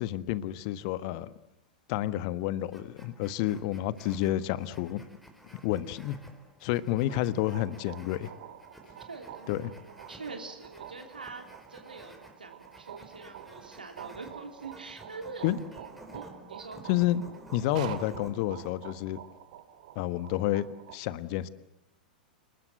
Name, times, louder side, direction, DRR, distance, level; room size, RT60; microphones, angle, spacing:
voice 1, 0.0-1.3 1.9-5.0 5.6-6.2 6.6-8.3 9.5-9.7 15.4-15.6 16.9-17.3 17.5-19.2 19.9-21.5, left 13 dB, 50° left, 14 dB, 1.4 m, -30 dB
sound 1, 2.7-18.7, right 1 dB, ahead, 4.5 m, -52 dB
sound 2, 6.9-21.0, right 10 dB, 60° right, 2.6 m, -47 dB
voice 2, 9.1-16.8, right 3 dB, 85° right, 4 dB, 3.1 m, -45 dB
29.5 x 20.5 x 8.1 m, 0.85 s
figure-of-eight pair, 95°, 5 cm